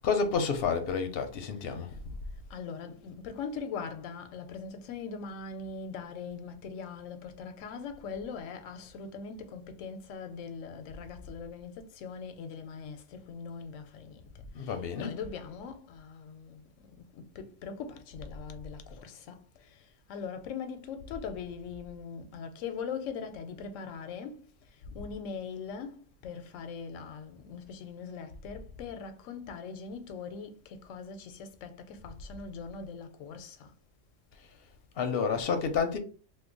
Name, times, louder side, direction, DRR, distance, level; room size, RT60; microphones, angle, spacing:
voice 1, 0.0-1.9 14.5-15.1 35.0-36.0, left 5 dB, 60° left, 0.7 m, -29 dB
voice 2, 2.5-14.2 14.6-19.4 20.1-24.4 24.9-33.7, left 5 dB, 85° left, 0.9 m, -41 dB
2.9 x 2.1 x 3.7 m
omnidirectional pair, 1.3 m